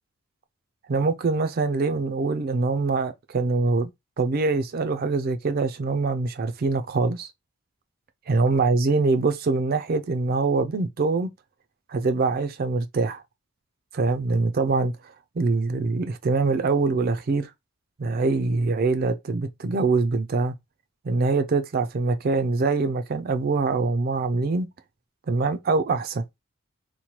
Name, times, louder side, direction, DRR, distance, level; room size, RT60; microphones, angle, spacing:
voice 1, 0.9-3.9 4.2-7.3 8.3-11.3 11.9-13.2 13.9-14.9 15.4-17.5 18.0-20.5 21.0-24.7 25.3-26.2, right 3 dB, 45° right, 0.4 m, -24 dB
3.0 x 2.2 x 2.9 m
head